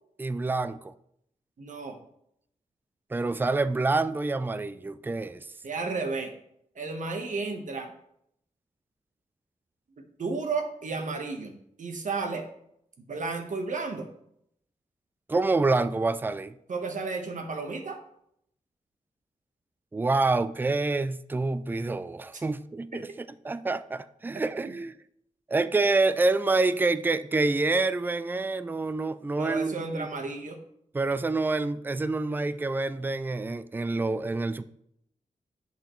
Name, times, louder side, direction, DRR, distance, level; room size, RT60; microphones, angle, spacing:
voice 1, 0.2-0.9 3.1-5.4 15.3-16.5 19.9-24.9 25.5-30.1 30.9-34.6, right 3 dB, 15° right, 0.3 m, -27 dB
voice 2, 1.6-2.0 5.6-6.3 6.7-7.9 10.0-12.4 13.1-14.1 16.7-18.0 22.3-22.4 29.4-30.6, right 4 dB, 65° right, 1.2 m, -33 dB
10.5 x 5.7 x 3.1 m
wide cardioid pair, 90°, 14 cm